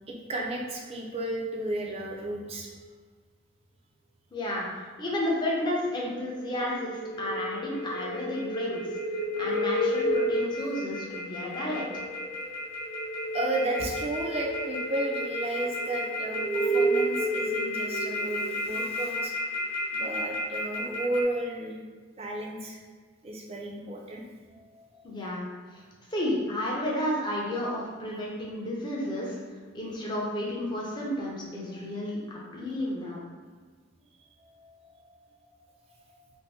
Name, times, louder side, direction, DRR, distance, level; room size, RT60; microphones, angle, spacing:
voice 1, 0.1-2.7 9.2-9.4 13.3-19.3 19.9-21.8 22.2-22.8 23.2-24.2 24.5-24.9 31.7-31.8 34.4-35.2, right 1 dB, 30° right, 0 dB, 0.3 m, -33 dB
voice 2, 4.3-12.0 25.0-25.8 26.1-33.2, left 1 dB, 20° left, -4 dB, 0.5 m, -32 dB
sound 1, 6.5-21.2, equal, 60° left, 0.8 m, -31 dB
2.6 x 2.6 x 3.4 m, 1.5 s
head